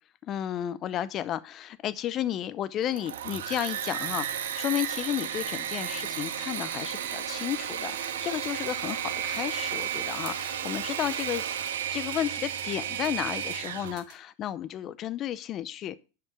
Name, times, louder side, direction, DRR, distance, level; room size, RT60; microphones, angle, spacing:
voice 1, 0.2-11.4 11.9-16.0, left 11 dB, 40° left, 16 dB, 0.6 m, -33 dB
Engine / Mechanisms, 2.8-14.0, right 9 dB, 90° right, 1.6 m, -33 dB
sound 1, 6.8-14.2, right 12 dB, 70° right, 2.2 m, -52 dB
10.5 x 5.5 x 5.9 m, 0.34 s
supercardioid pair, 115°, 0 cm